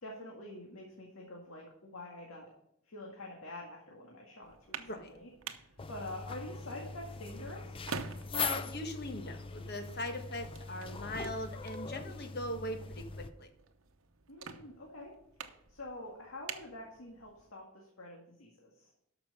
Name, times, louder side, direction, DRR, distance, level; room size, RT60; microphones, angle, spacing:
voice 1, 0.0-2.5 2.8-7.8 14.3-15.1 15.7-18.9, left 1 dB, 85° left, -1 dB, 1.9 m, -47 dB
sound 1, 4.4-17.5, right 5 dB, 85° right, 0.9 m, -49 dB
voice 2, 4.8-5.1 8.3-13.5, left 1 dB, 50° left, 5 dB, 1.4 m, -40 dB
sound 2, 5.8-13.3, left 5 dB, 25° left, 0.5 m, -41 dB
12.5 x 6.0 x 5.4 m, 0.76 s
head